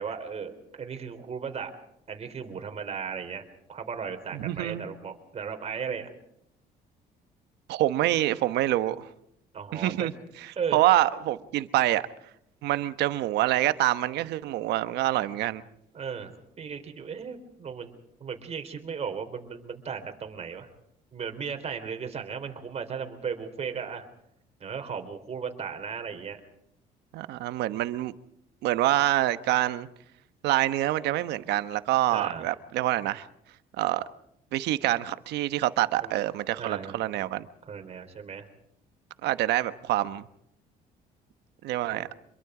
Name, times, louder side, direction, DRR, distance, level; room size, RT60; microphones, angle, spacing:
voice 1, 0.0-1.7 2.1-6.1 9.5-10.1 10.6-10.8 15.9-20.7 21.1-24.1 24.6-26.4 32.0-32.5 36.0-36.2 36.6-37.0 37.7-38.5 41.9-42.1, right 6 dB, 40° right, 3.7 m, -36 dB
voice 2, 4.3-4.9 7.7-9.1 9.7-10.1 10.7-12.0 12.6-15.6 27.1-28.1 28.6-29.9 30.4-33.3 33.8-34.0 34.5-37.5 39.2-40.2 41.6-42.1, right 15 dB, 80° right, 1.1 m, -26 dB
26.0 x 22.5 x 5.0 m
cardioid pair, 110°, 17 cm